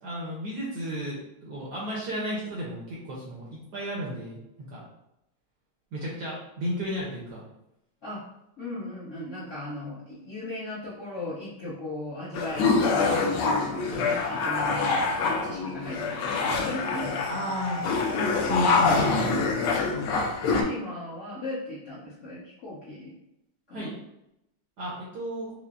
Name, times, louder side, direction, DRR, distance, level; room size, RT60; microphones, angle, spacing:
voice 1, 0.0-4.4 4.7-4.8 5.9-7.4 13.9-14.0 17.3-19.3 23.7-23.9 24.8-25.5, equal, 65° right, -5 dB, 1.1 m, -33 dB
voice 2, 8.6-17.2 17.8-17.9 20.1-23.1 23.7-23.9, left 1 dB, 50° left, -10 dB, 0.9 m, -37 dB
sound 1, 12.3-20.6, left 4 dB, 75° left, 1.3 m, -25 dB
5.6 x 2.0 x 2.5 m, 0.85 s
omnidirectional pair, 2.4 m